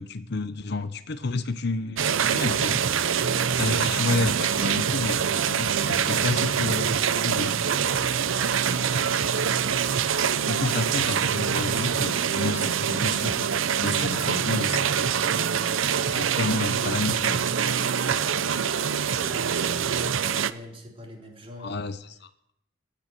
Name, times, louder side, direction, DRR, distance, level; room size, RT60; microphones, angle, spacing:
voice 1, 0.0-2.8 3.6-7.0 7.2-7.6 10.4-13.5 13.8-14.8 16.1-17.5 21.6-22.5, left 3 dB, 55° left, 12 dB, 0.8 m, -30 dB
sound 1, 2.0-20.5, right 7 dB, 75° right, 0.7 m, -25 dB
voice 2, 19.2-21.8, equal, 25° right, 1 dB, 3.4 m, -43 dB
16.0 x 8.8 x 9.1 m, 0.76 s
head